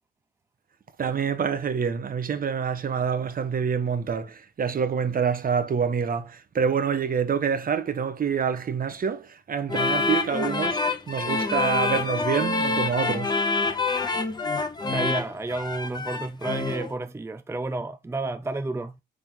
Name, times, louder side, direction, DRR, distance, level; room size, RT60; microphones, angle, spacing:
voice 1, 1.0-13.4, right 6 dB, 45° right, 1.3 m, -27 dB
sound 1, 9.7-16.9, left 3 dB, 20° left, 1.5 m, -26 dB
voice 2, 14.8-19.0, right 2 dB, 15° right, 0.6 m, -31 dB
9.1 x 3.9 x 3.7 m
cardioid pair, 90°, 20 cm